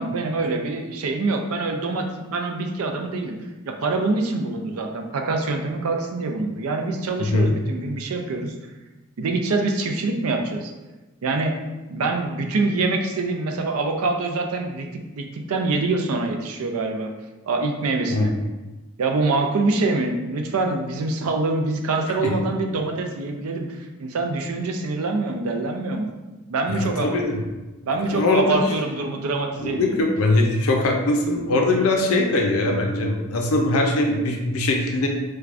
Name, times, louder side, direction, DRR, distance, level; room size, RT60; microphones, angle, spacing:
voice 1, 0.0-3.4 3.7-8.6 9.2-10.7 11.2-11.5 11.9-14.9 15.2-17.1 17.5-18.3 19.0-26.1 26.5-27.2 27.9-30.0, right 3 dB, 85° right, 4 dB, 0.4 m, -25 dB
voice 2, 26.7-27.4 28.1-28.6 29.6-35.1, left 2 dB, 75° left, 1 dB, 0.5 m, -21 dB
4.6 x 2.2 x 2.4 m, 1.1 s
head